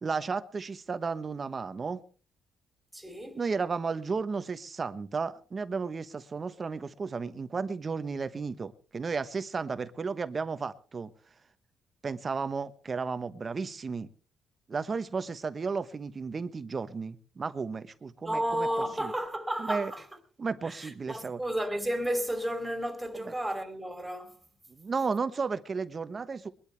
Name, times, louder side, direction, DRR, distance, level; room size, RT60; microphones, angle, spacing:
voice 1, 0.0-2.0 3.3-11.1 12.0-14.1 14.7-18.7 19.0-19.1 19.6-19.9 20.4-21.4 23.3-23.4 24.8-26.5, right 4 dB, 35° right, 1.0 m, -33 dB
voice 2, 2.9-3.4 18.2-20.1 20.6-24.4, right 1 dB, 10° right, 2.9 m, -32 dB
22.5 x 12.0 x 3.3 m
cardioid pair, 90°, 0 cm